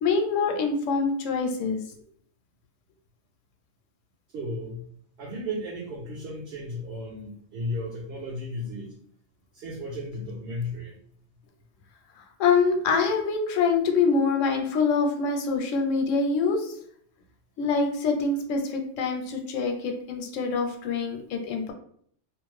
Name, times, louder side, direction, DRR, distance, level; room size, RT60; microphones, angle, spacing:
voice 1, 0.0-1.8 12.4-16.8 17.6-21.7, left 4 dB, 85° left, 3 dB, 0.9 m, -25 dB
voice 2, 4.3-4.9 5.2-9.0 9.5-10.9, left 1 dB, 65° right, -2 dB, 0.7 m, -34 dB
2.5 x 2.3 x 3.1 m, 0.62 s
omnidirectional pair, 1.3 m